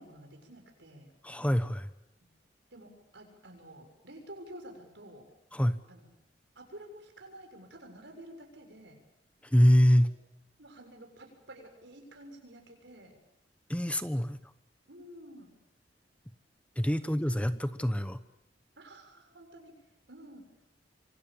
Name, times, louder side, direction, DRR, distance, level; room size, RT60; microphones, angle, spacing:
voice 1, 0.0-1.1 2.7-5.2 5.9-6.1 6.6-9.0 10.6-13.2 14.9-15.5 17.0-17.1 17.4-17.5 18.8-19.8 20.1-20.5, right 1 dB, 75° right, 4 dB, 7.1 m, -50 dB
voice 2, 1.2-1.9 5.5-5.8 9.5-10.1 13.7-14.4 16.8-18.2, equal, 5° left, 11 dB, 1.0 m, -25 dB
26.5 x 25.0 x 7.2 m, 0.85 s
head